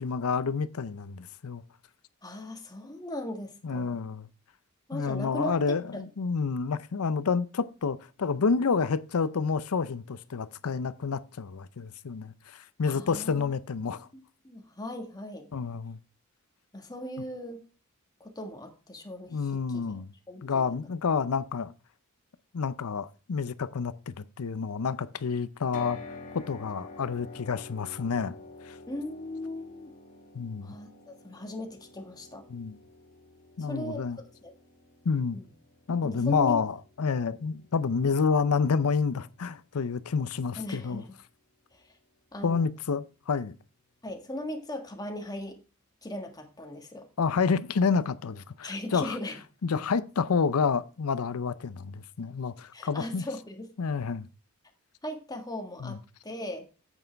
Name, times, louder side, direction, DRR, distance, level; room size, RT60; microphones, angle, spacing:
voice 1, 0.0-1.6 3.6-4.3 4.9-14.1 15.5-16.0 19.3-20.1 20.4-21.7 22.5-26.0 26.3-28.3 28.7-28.8 30.3-30.8 32.5-32.8 33.6-34.2 35.1-35.4 35.9-41.0 42.4-43.5 47.2-49.2 49.6-53.2 53.8-54.3 55.8-56.0, left 5 dB, 90° left, 0.6 m, -29 dB
voice 2, 2.2-4.0 4.9-5.7 12.8-13.5 14.4-15.5 16.7-17.6 18.2-19.8 20.3-20.9 28.9-29.9 30.6-32.4 33.6-34.1 34.4-34.5 35.3-35.5 36.0-36.6 40.6-41.1 41.7-42.0 42.3-42.6 44.0-45.6 46.0-47.1 48.6-49.4 52.7-53.7 55.0-56.6, left 1 dB, 20° left, 1.6 m, -38 dB
sound 1, 25.7-39.9, left 2 dB, 40° left, 1.5 m, -49 dB
9.1 x 8.3 x 3.4 m
head